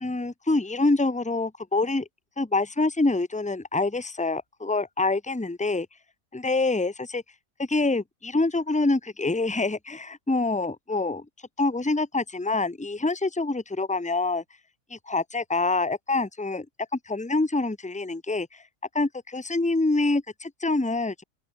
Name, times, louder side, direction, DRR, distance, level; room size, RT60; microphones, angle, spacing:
voice 1, 0.0-2.1 2.4-5.9 6.3-7.2 7.6-11.2 11.6-14.4 14.9-16.7 17.1-18.6 18.9-21.2, left 3 dB, 5° left, 1.0 m, -26 dB
open air
omnidirectional pair, 1.7 m